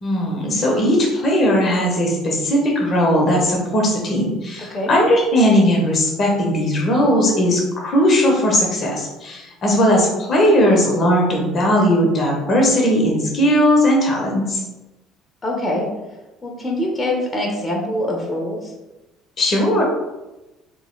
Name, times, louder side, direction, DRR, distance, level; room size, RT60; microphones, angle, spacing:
voice 1, 0.0-14.6 19.4-19.8, equal, 40° left, 0 dB, 1.1 m, -18 dB
voice 2, 15.4-15.9 16.4-18.7, left 1 dB, 20° left, 0 dB, 1.1 m, -24 dB
3.6 x 3.1 x 3.9 m, 1.0 s
figure-of-eight pair, 55°, 0 cm